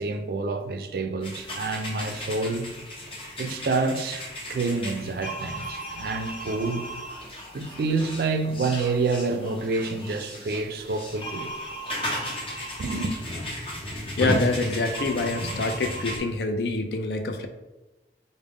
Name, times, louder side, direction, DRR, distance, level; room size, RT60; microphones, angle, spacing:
voice 1, 0.0-2.7 3.4-6.9 7.5-11.5 12.8-13.1, right 3 dB, 55° right, 0.3 m, -28 dB
sound 1, 1.2-16.2, equal, 30° left, 0.7 m, -34 dB
voice 2, 14.2-17.5, left 3 dB, 70° left, 0.4 m, -26 dB
4.9 x 2.1 x 3.5 m
head